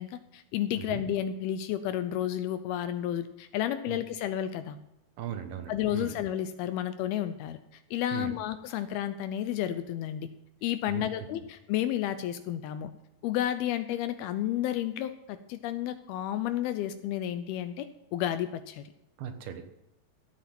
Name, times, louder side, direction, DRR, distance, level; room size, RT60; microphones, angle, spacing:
voice 1, 0.0-4.8 5.7-7.6 7.9-10.3 10.6-12.9 13.2-18.9, left 11 dB, 80° left, 11 dB, 2.4 m, -31 dB
voice 2, 5.2-6.1 8.1-8.4 10.9-11.3 19.2-19.6, right 10 dB, 70° right, 7 dB, 3.0 m, -38 dB
15.0 x 8.6 x 5.9 m, 0.88 s
omnidirectional pair, 4.8 m